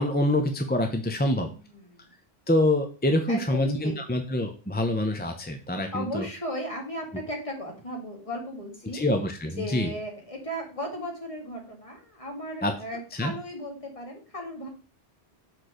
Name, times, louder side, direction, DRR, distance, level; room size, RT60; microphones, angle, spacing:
voice 1, 0.0-1.5 2.5-6.2 8.9-9.9 12.6-12.7 13.2-13.3, left 1 dB, 10° left, 4 dB, 0.6 m, -25 dB
voice 2, 1.3-2.1 3.3-4.0 5.9-9.0 9.6-14.7, equal, 30° left, 0 dB, 2.1 m, -36 dB
6.4 x 4.5 x 5.0 m, 0.36 s
omnidirectional pair, 1.1 m